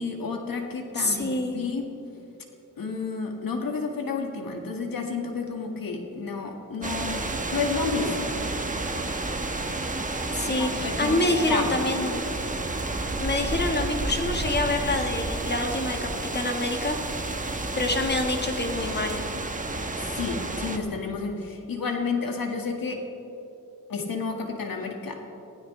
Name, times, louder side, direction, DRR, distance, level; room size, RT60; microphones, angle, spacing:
voice 1, 0.0-1.8 2.8-7.3 7.5-8.6 10.6-11.8 19.8-23.1 23.9-25.3, left 4 dB, 75° left, 2 dB, 2.0 m, -31 dB
voice 2, 0.9-1.6 10.3-12.2 13.2-19.2, left 2 dB, 30° left, 3 dB, 1.6 m, -27 dB
sound 1, 6.8-20.8, right 2 dB, 20° right, 1.2 m, -30 dB
23.0 x 16.0 x 3.3 m, 2.9 s
wide cardioid pair, 85°, 35 cm